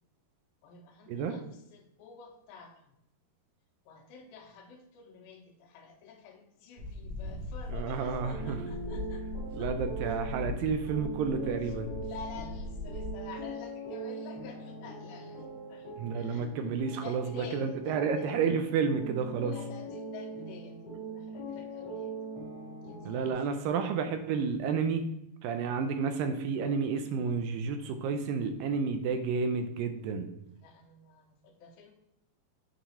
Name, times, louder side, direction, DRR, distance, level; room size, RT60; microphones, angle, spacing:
voice 1, 0.6-2.9 3.9-9.3 9.6-9.7 11.6-11.8 12.0-16.5 17.0-18.4 19.4-22.3 22.8-23.8 30.4-31.9, left 5 dB, 75° left, 0 dB, 2.6 m, -49 dB
sound 1, 6.8-13.2, left 2 dB, 60° right, 3.3 m, -40 dB
voice 2, 7.7-8.6 9.6-11.9 16.0-19.6 23.1-25.0 25.4-30.3, right 5 dB, 80° right, 7 dB, 2.1 m, -31 dB
sound 2, 8.3-23.3, right 2 dB, 30° left, 2.6 m, -42 dB
7.9 x 4.9 x 4.3 m, 0.81 s
omnidirectional pair, 4.4 m